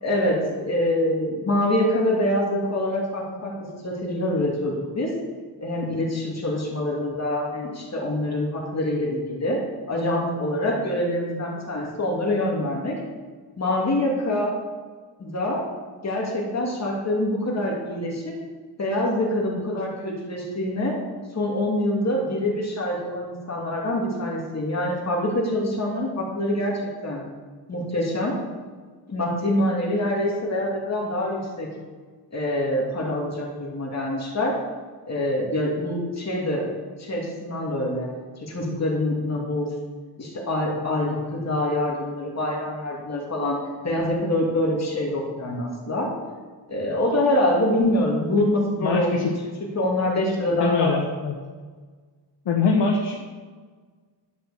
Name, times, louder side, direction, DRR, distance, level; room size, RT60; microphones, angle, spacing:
voice 1, 0.0-3.5 3.8-5.1 5.6-9.6 9.9-13.0 13.6-14.5 15.2-15.6 16.0-18.3 18.8-21.0 21.3-27.2 27.7-28.3 29.1-31.7 32.3-34.5 35.1-36.6 37.0-38.1 38.4-39.7 40.2-43.6 43.8-46.1 46.7-49.3 49.7-50.9, left 1 dB, 40° left, -3 dB, 2.7 m, -25 dB
voice 2, 48.8-49.3 50.6-51.4 52.4-53.1, left 4 dB, 80° left, -1 dB, 1.5 m, -22 dB
11.5 x 6.1 x 7.2 m, 1.5 s
wide cardioid pair, 155°, 43 cm